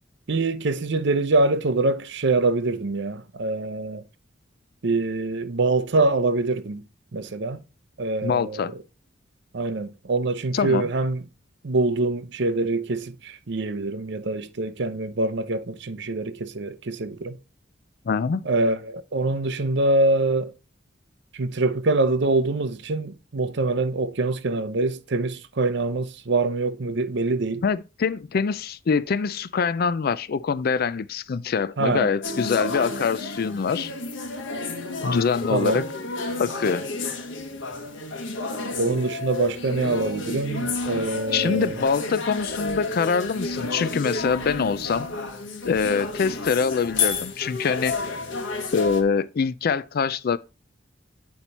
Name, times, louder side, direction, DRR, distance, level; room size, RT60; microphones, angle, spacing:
voice 1, 0.3-4.0 4.8-6.8 7.1-7.6 8.0-8.8 9.5-11.2 11.6-17.4 18.4-20.5 21.3-27.6 31.8-32.1 35.5-35.8 38.8-41.8, right 2 dB, 65° right, 0.7 m, -24 dB
voice 2, 8.2-8.7 10.5-10.9 18.1-18.5 27.6-33.9 35.0-35.8 36.4-36.8 41.3-45.1 45.6-48.1 48.7-50.4, left 5 dB, 50° left, 0.4 m, -24 dB
sound 1, 32.2-49.0, left 3 dB, 75° left, 1.2 m, -31 dB
8.6 x 4.5 x 4.1 m
head